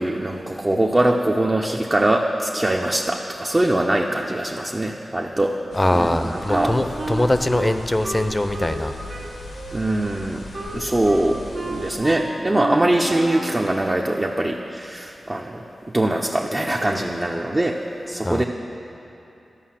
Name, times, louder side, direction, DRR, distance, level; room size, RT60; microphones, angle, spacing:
voice 1, 0.0-5.6 5.9-6.8 9.7-10.4 10.7-15.6 15.9-18.4, right 1 dB, 30° right, 0 dB, 0.7 m, -22 dB
sound 1, 5.7-11.9, left 2 dB, 85° left, 1.3 m, -39 dB
voice 2, 5.7-8.9 18.2-18.4, left 1 dB, 25° left, 8 dB, 0.7 m, -22 dB
Wind instrument woodwind instrument, 6.0-8.8 9.1-13.6, right 2 dB, 70° right, 1.1 m, -31 dB
11.5 x 5.5 x 7.4 m, 2.9 s
cardioid pair, 40°, 0 cm